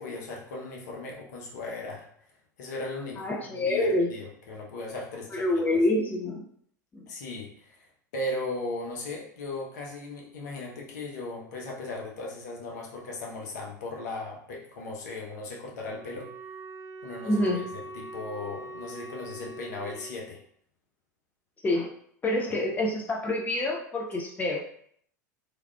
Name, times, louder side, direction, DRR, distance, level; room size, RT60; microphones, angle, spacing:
voice 1, 0.0-2.1 2.6-5.5 5.7-5.8 7.1-7.9 8.1-16.3 17.0-17.6 17.9-20.4 22.5-22.6, left 2 dB, 65° left, -1 dB, 0.7 m, -37 dB
voice 2, 3.2-4.1 5.3-6.4 6.9-7.1 17.2-17.6 21.6-21.9 22.2-24.6, left 1 dB, 15° left, 0 dB, 0.5 m, -27 dB
Wind instrument woodwind instrument, 15.8-20.2, right 2 dB, 20° right, 0.7 m, -42 dB
3.3 x 2.3 x 2.2 m, 0.64 s
figure-of-eight pair, 80°, 10 cm